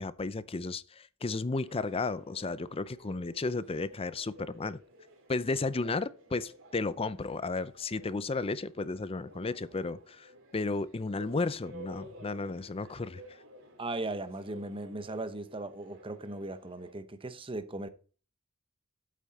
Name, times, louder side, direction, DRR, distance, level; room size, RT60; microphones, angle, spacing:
voice 1, 0.0-4.8 5.3-13.2, left 3 dB, 25° left, 0.5 m, -33 dB
sound 1, 1.7-16.9, right 1 dB, 60° right, 3.2 m, -54 dB
voice 2, 13.8-17.9, right 2 dB, 25° right, 1.0 m, -38 dB
11.0 x 8.5 x 4.2 m
head